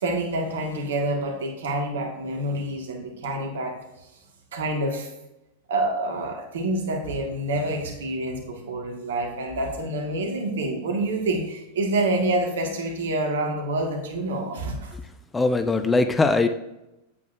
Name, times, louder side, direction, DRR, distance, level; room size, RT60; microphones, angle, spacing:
voice 1, 0.0-3.8 4.5-5.1 5.7-14.9, right 1 dB, 70° right, 2 dB, 1.8 m, -27 dB
voice 2, 15.3-16.5, left 3 dB, 15° left, 9 dB, 0.5 m, -21 dB
8.4 x 8.4 x 2.6 m, 0.94 s
figure-of-eight pair, 95°, 0 cm